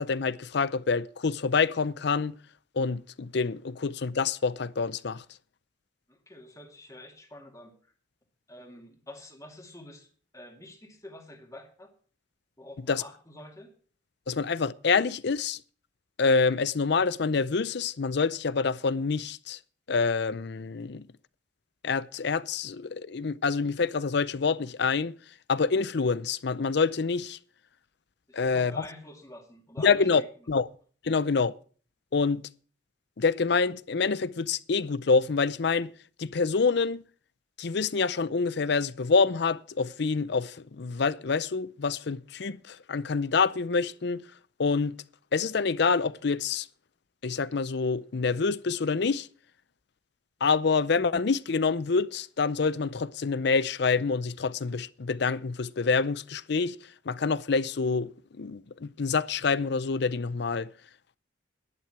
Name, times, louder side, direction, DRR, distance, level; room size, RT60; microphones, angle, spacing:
voice 1, 0.0-2.4 2.8-5.2 12.9-13.0 14.3-15.6 16.2-19.6 19.9-21.0 21.8-25.1 25.5-27.4 28.3-28.7 29.8-30.2 30.5-30.7 31.0-31.5 32.1-32.4 33.2-35.9 36.2-37.0 37.6-44.2 44.6-45.0 45.3-46.7 47.2-49.3 50.4-56.8 57.1-60.7, left 4 dB, 60° left, 0.6 m, -27 dB
voice 2, 6.1-7.7 8.5-10.1 10.3-11.9 12.6-13.7 28.3-30.3, left 1 dB, 15° left, 2.4 m, -47 dB
11.5 x 11.0 x 6.0 m
head